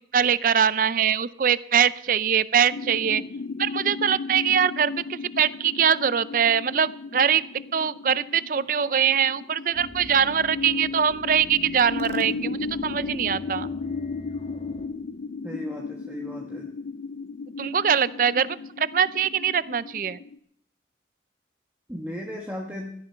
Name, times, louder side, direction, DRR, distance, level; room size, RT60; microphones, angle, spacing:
voice 1, 0.1-3.2 3.6-7.4 7.7-13.7 17.6-20.2, right 8 dB, 50° right, 17 dB, 0.5 m, -23 dB
sound 1, 2.7-20.4, left 4 dB, 65° left, 0.4 m, -35 dB
sound 2, 9.7-14.9, left 1 dB, 35° left, 1.3 m, -43 dB
voice 2, 15.4-16.7 21.9-22.9, equal, 10° right, -1 dB, 1.2 m, -36 dB
16.5 x 12.5 x 4.5 m, 0.71 s
head